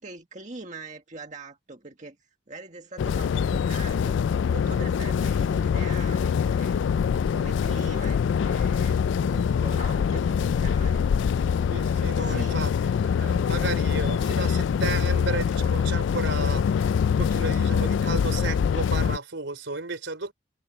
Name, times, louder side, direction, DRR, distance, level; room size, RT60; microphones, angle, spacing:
voice 1, 0.0-4.2 4.5-6.8 7.3-11.1 12.2-12.7, right 3 dB, 40° right, 1.7 m, -42 dB
sound 1, 3.0-19.2, left 7 dB, 75° left, 0.3 m, -24 dB
voice 2, 11.7-12.9 13.2-20.3, right 3 dB, 75° right, 3.6 m, -33 dB
head